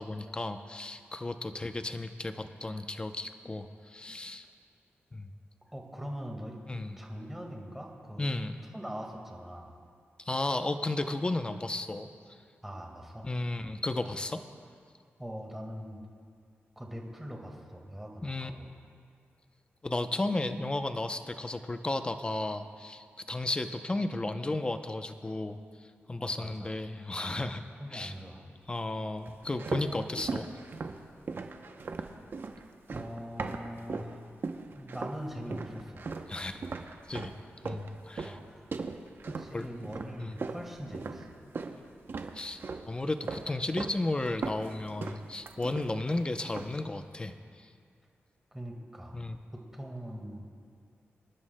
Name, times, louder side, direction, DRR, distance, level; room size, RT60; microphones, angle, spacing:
voice 1, 0.0-4.5 5.1-5.3 6.7-7.0 8.2-8.6 10.2-12.1 13.2-14.4 18.2-18.5 19.8-25.6 26.1-27.6 27.9-28.1 28.7-30.5 36.3-36.6 37.1-37.3 37.6-38.4 39.5-39.7 40.2-40.4 42.3-42.6 42.9-47.7 49.1-49.4, left 2 dB, 20° left, 8 dB, 0.6 m, -34 dB
voice 2, 5.7-6.6 7.0-8.3 8.7-9.7 12.6-13.3 15.2-16.1 16.8-18.7 26.2-26.7 27.8-28.5 32.9-34.3 34.7-36.1 38.2-38.7 39.2-41.4 48.5-49.2 49.5-50.4, equal, 5° right, 0 dB, 1.8 m, -42 dB
sound 1, 29.2-34.1 34.4-35.2 35.5-41.8 42.1-42.9 43.2-44.0 44.3-46.1 46.4-46.8, right 4 dB, 55° right, 0.7 m, -38 dB
25.5 x 11.0 x 2.2 m, 2.2 s
cardioid pair, 85°, 4 cm